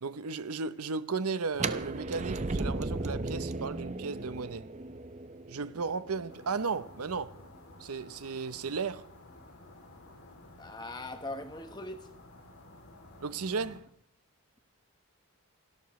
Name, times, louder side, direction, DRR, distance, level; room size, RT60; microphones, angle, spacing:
voice 1, 0.0-4.7 5.5-7.4 7.8-9.1 13.2-13.9, right 4 dB, 85° right, 0.8 m, -35 dB
sound 1, 1.5-7.4, right 3 dB, 30° right, 0.6 m, -36 dB
sound 2, 6.3-13.8, left 2 dB, 80° left, 3.0 m, -53 dB
voice 2, 10.6-12.1, left 2 dB, 20° left, 1.2 m, -40 dB
28.5 x 12.0 x 3.2 m
head